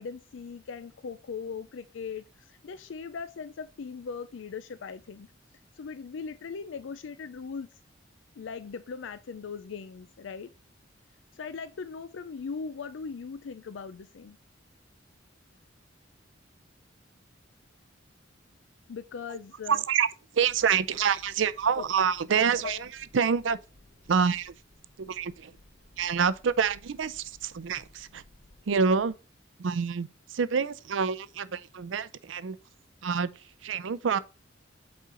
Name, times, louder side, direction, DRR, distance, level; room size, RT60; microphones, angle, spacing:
voice 1, 0.0-5.3 5.8-7.7 8.4-10.5 11.3-14.4 18.9-19.8 21.8-21.9 22.6-22.8, left 5 dB, 80° left, 0.4 m, -39 dB
voice 2, 19.7-20.1 20.3-23.6 24.1-24.5 25.0-25.5 26.0-28.2 28.7-29.1 29.6-32.6 33.0-33.3 33.6-34.2, right 6 dB, 90° right, 0.5 m, -27 dB
sound 1, 20.4-29.1, left 1 dB, 50° left, 0.9 m, -59 dB
8.3 x 4.3 x 3.7 m
head